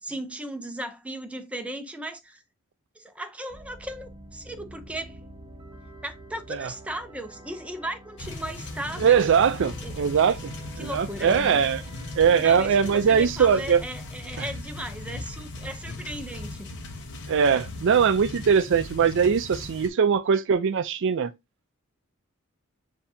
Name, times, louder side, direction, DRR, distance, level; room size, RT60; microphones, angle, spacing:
voice 1, 0.0-2.4 3.0-5.2 6.0-9.2 9.8-9.9 10.8-11.6 12.2-16.7, right 1 dB, 5° right, 0.6 m, -36 dB
sound 1, 3.5-13.1, right 1 dB, 25° right, 1.0 m, -47 dB
sound 2, 8.2-19.9, left 2 dB, 55° left, 0.9 m, -38 dB
voice 2, 9.0-11.8 12.2-13.8 14.4-14.5 17.3-21.3, right 6 dB, 55° right, 0.4 m, -21 dB
6.9 x 2.7 x 2.7 m
head